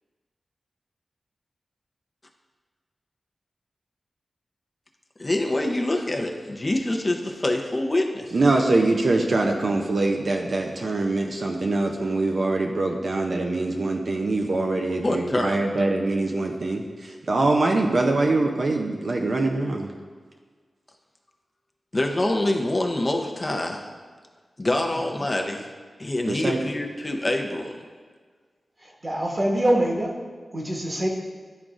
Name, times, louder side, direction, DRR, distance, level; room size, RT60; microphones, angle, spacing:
voice 1, 5.2-8.3 15.0-15.6 21.9-23.9 24.6-25.7 26.0-27.8, left 1 dB, 35° left, 2 dB, 0.7 m, -25 dB
voice 2, 8.3-19.9 26.3-26.6, right 2 dB, 60° right, 2 dB, 0.5 m, -23 dB
voice 3, 28.8-30.2 30.5-31.1, right 1 dB, 40° right, -2 dB, 1.4 m, -24 dB
10.5 x 3.7 x 2.4 m, 1.5 s
cardioid pair, 55°, 0 cm